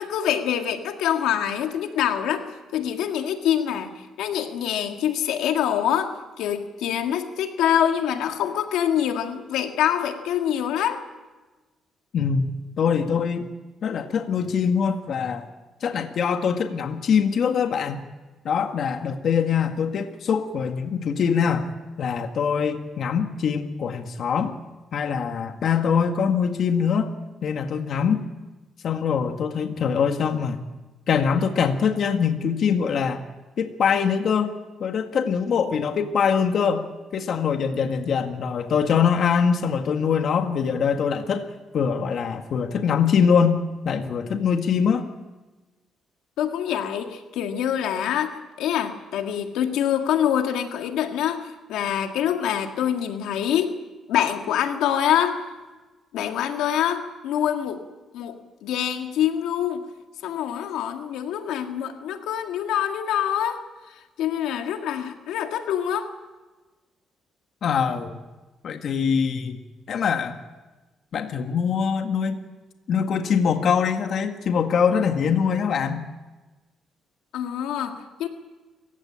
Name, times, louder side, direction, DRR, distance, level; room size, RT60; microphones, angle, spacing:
voice 1, 0.0-2.4 2.7-3.9 4.2-11.0 46.4-53.7 54.1-55.4 56.1-57.8 58.1-58.4 58.6-59.9 60.2-63.6 64.2-66.1 77.3-78.3, left 10 dB, 90° left, 5 dB, 2.0 m, -25 dB
voice 2, 12.1-13.5 13.8-15.5 15.8-18.0 18.5-21.7 22.0-24.5 24.9-27.1 27.4-28.2 28.8-30.6 31.1-33.2 33.6-34.5 34.8-36.9 37.1-41.5 41.7-43.6 43.9-45.1 67.6-68.2 68.6-69.6 69.9-70.4 71.1-72.4 72.9-76.0, left 6 dB, 60° left, 6 dB, 1.7 m, -23 dB
27.0 x 16.0 x 8.7 m, 1.2 s
cardioid pair, 90°, 0 cm